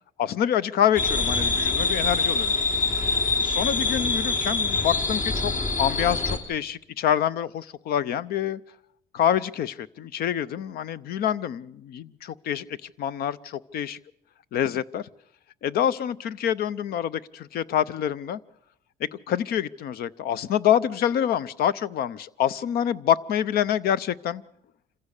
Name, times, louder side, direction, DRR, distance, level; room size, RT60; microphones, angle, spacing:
voice 1, 0.2-2.6 3.4-5.5 5.8-8.6 9.1-14.0 14.5-15.1 15.6-18.4 19.0-24.4, left 10 dB, 65° left, 0.7 m, -26 dB
sound 1, 1.0-6.4, left 3 dB, 45° left, 3.2 m, -25 dB
26.5 x 15.0 x 6.6 m
cardioid pair, 110°, 17 cm